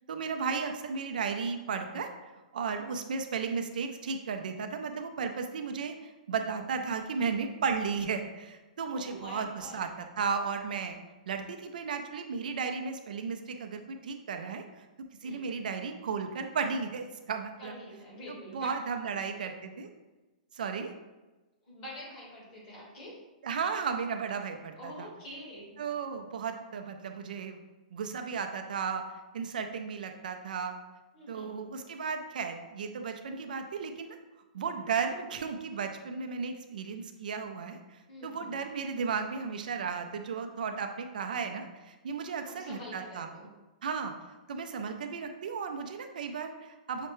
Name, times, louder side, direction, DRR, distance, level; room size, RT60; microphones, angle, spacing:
voice 1, 0.1-2.1 2.5-11.0 11.3-14.6 15.2-17.8 18.3-19.9 20.5-20.9 23.4-25.1 25.8-27.6 27.9-29.0 29.3-30.8 31.3-34.2 34.5-43.3 43.8-47.1, right 5 dB, 75° right, 5 dB, 0.4 m, -34 dB
voice 2, 8.9-9.9 15.2-15.5 17.6-18.7 19.1-19.5 21.6-23.2 24.8-25.8 31.1-31.6 38.1-38.6 42.5-43.5, equal, 25° left, -6 dB, 1.5 m, -46 dB
5.6 x 2.1 x 3.0 m, 1.1 s
hypercardioid pair, 170°, 5 cm